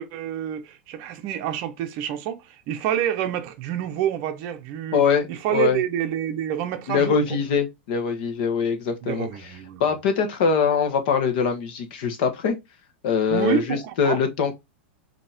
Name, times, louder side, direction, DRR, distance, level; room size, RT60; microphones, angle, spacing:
voice 1, 0.0-5.0 5.3-7.2 9.0-9.8 13.3-14.2, right 10 dB, 35° right, 0.7 m, -28 dB
voice 2, 4.9-5.8 6.9-9.5 9.8-12.6 13.0-14.5, left 6 dB, 50° left, 1.2 m, -23 dB
5.2 x 2.9 x 3.4 m
supercardioid pair, 165°, 6 cm